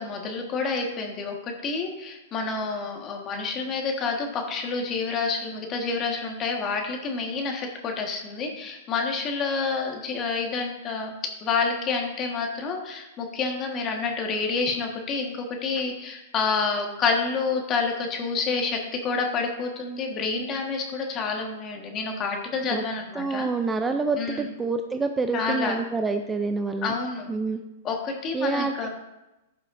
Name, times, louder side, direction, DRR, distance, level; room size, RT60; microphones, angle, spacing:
voice 1, 0.0-23.5 24.2-24.5 25.3-25.8 26.8-27.3 27.8-28.9, left 4 dB, 30° left, 2 dB, 1.5 m, -28 dB
voice 2, 23.2-26.9 27.3-27.6 28.3-28.9, right 4 dB, 15° right, 7 dB, 0.4 m, -27 dB
15.5 x 5.6 x 2.6 m, 0.99 s
hypercardioid pair, 135°, 0 cm